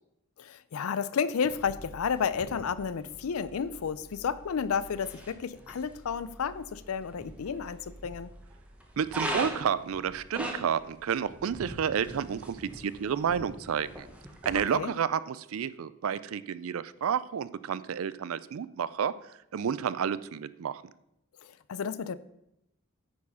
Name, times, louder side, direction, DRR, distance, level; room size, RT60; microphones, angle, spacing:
voice 1, 0.4-8.3 14.5-14.9 21.4-22.2, left 6 dB, 75° left, 17 dB, 0.4 m, -32 dB
sound 1, 1.4-14.5, right 1 dB, 5° right, 1.0 m, -42 dB
voice 2, 9.0-14.1 14.4-19.1 19.5-20.8, right 7 dB, 70° right, 17 dB, 0.4 m, -30 dB
9.4 x 4.7 x 5.6 m, 0.83 s
head